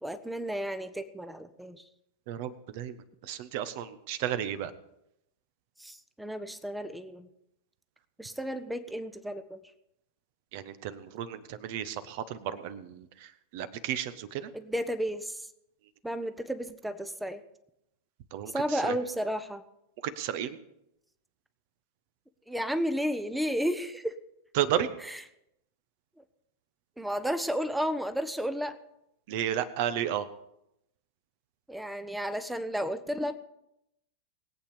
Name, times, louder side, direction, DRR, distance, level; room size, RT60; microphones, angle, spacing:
voice 1, 0.0-1.8 5.8-7.3 8.2-9.6 14.5-15.5 16.0-17.4 18.5-19.6 22.5-24.1 25.0-25.2 27.0-28.8 31.7-33.3, equal, 5° right, 11 dB, 0.9 m, -32 dB
voice 2, 2.3-4.7 10.5-14.5 18.3-19.0 20.0-20.6 24.5-24.9 29.3-30.3, right 10 dB, 50° right, 13 dB, 1.1 m, -33 dB
21.0 x 8.6 x 5.2 m, 0.82 s
figure-of-eight pair, 90°, 0 cm